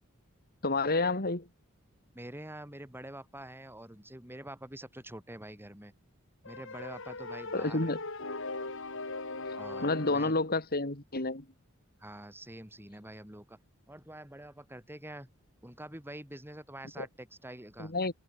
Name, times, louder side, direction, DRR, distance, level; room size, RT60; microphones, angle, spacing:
voice 1, 0.6-1.5 7.5-8.0 9.8-11.4 17.0-17.1 17.8-18.1, left 2 dB, 45° left, 3.5 m, -29 dB
voice 2, 2.1-5.9 6.4-7.9 9.6-10.3 12.0-13.6 13.9-15.3 15.6-17.9, right 1 dB, 10° right, 5.9 m, -46 dB
sound 1, 6.4-10.5, left 3 dB, 65° left, 6.8 m, -39 dB
head